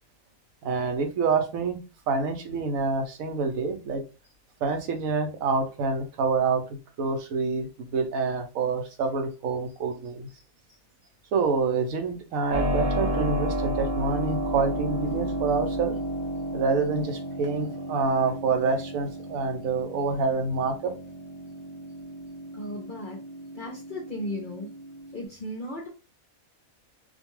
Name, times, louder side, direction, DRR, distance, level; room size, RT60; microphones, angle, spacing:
voice 1, 0.6-1.8 2.1-4.0 4.6-10.3 11.3-16.0 16.5-20.9, right 4 dB, 75° right, 6 dB, 1.0 m, -27 dB
Keyboard (musical), 12.5-25.2, right 1 dB, 60° right, 0.6 m, -32 dB
voice 2, 22.5-23.2 23.5-24.7 25.1-25.9, left 1 dB, 55° left, -1 dB, 0.5 m, -36 dB
2.5 x 2.2 x 3.0 m, 0.31 s
omnidirectional pair, 1.5 m